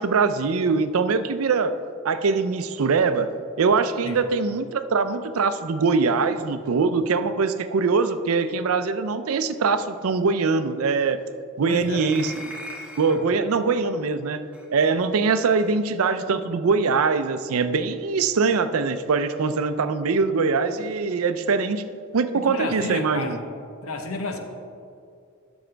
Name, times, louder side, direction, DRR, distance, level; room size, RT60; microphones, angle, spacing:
voice 1, 0.0-1.8 2.0-3.3 3.6-11.2 11.6-12.3 13.0-14.4 14.7-21.8 22.1-23.4, right 4 dB, 85° right, 11 dB, 0.5 m, -22 dB
voice 2, 11.7-12.1 13.1-13.2 22.3-23.4 23.8-24.4, left 2 dB, 85° left, 4 dB, 0.9 m, -31 dB
sound 1, 11.9-13.2 14.5-14.7 15.6-15.8, equal, 5° right, 0.8 m, -39 dB
12.5 x 6.2 x 3.4 m, 2.4 s
head